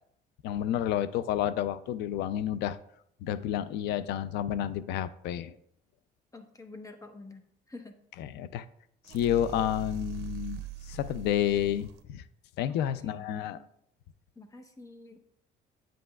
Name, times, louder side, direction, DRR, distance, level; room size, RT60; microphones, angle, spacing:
voice 1, 0.4-2.8 3.2-5.5 8.4-8.6 9.1-10.6 10.9-12.2 12.6-13.6, left 10 dB, 80° left, 15 dB, 0.4 m, -30 dB
voice 2, 6.3-7.4 7.7-8.0 12.7-13.7 14.4-15.2, left 2 dB, 20° left, 6 dB, 0.9 m, -48 dB
sound 1, 9.0-12.0, right 8 dB, 80° right, 0.6 m, -42 dB
8.9 x 7.6 x 2.3 m, 0.70 s
cardioid pair, 110°, 17 cm